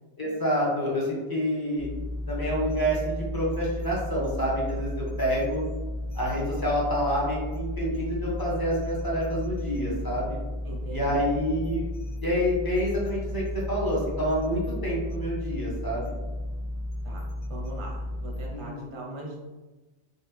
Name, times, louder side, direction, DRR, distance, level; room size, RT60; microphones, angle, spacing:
voice 1, 0.2-1.9 2.3-5.6 6.1-10.4 10.9-11.9 12.2-16.1 18.5-18.9, equal, 20° left, -6 dB, 0.9 m, -28 dB
sound 1, 1.8-18.5, left 1 dB, 55° left, 0.4 m, -34 dB
voice 2, 10.6-11.2 17.0-19.4, right 1 dB, 30° right, -2 dB, 0.6 m, -40 dB
3.3 x 2.4 x 3.3 m, 1.2 s
omnidirectional pair, 1.2 m